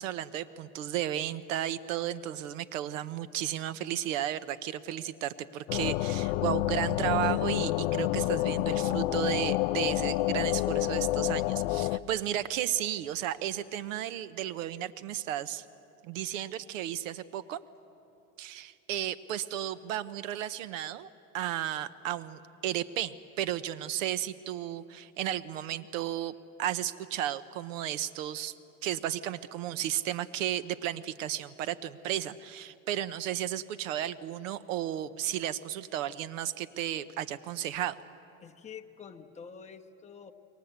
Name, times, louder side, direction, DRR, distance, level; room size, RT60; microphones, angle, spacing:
voice 1, 0.0-15.7 16.0-17.6 18.4-21.1 21.3-26.3 26.6-28.5 28.8-38.0, right 12 dB, 80° right, 15 dB, 1.1 m, -34 dB
sound 1, 5.7-12.0, left 16 dB, 70° left, 0.7 m, -28 dB
voice 2, 38.4-40.3, left 6 dB, 20° left, 2 dB, 1.3 m, -47 dB
29.5 x 22.5 x 8.2 m, 2.8 s
supercardioid pair, 130°, 38 cm